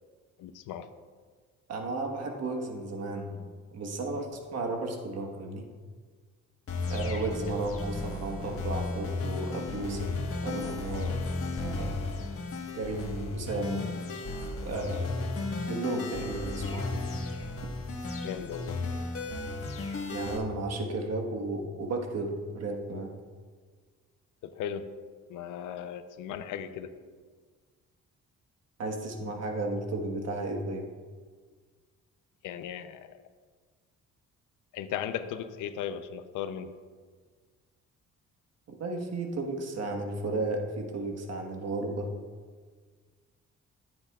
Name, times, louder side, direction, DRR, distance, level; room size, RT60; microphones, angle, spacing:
voice 1, 0.4-0.9 18.2-18.8 24.4-24.9 25.3-26.9 32.4-33.2 34.7-36.7, left 9 dB, 85° left, 10 dB, 0.6 m, -37 dB
voice 2, 1.7-3.4 3.7-5.6 6.9-10.1 10.4-11.2 11.5-12.0 12.7-13.9 14.6-15.2 15.7-17.0 20.1-23.1 28.8-30.8 38.7-42.1, right 2 dB, 55° right, 3 dB, 1.4 m, -34 dB
sound 1, 6.7-20.4, left 3 dB, 50° left, 1.4 m, -34 dB
14.0 x 8.0 x 2.4 m, 1.5 s
cardioid pair, 90°, 30 cm